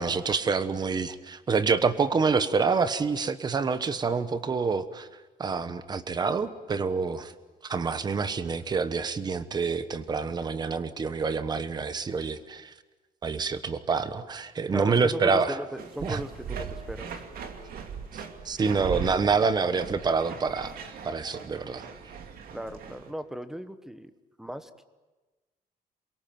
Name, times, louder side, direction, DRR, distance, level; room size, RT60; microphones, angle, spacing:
voice 1, 0.0-5.1 5.4-7.3 7.6-12.7 13.2-15.6 16.0-16.2 18.1-20.8 21.0-21.8, right 5 dB, 25° right, 13 dB, 1.2 m, -27 dB
voice 2, 14.7-17.2 22.5-24.1 24.4-24.9, right 1 dB, 5° right, 11 dB, 1.1 m, -37 dB
sound 1, 15.8-23.1, right 6 dB, 70° right, 2.6 m, -39 dB
28.0 x 23.0 x 9.3 m, 1.2 s
cardioid pair, 175°, 16 cm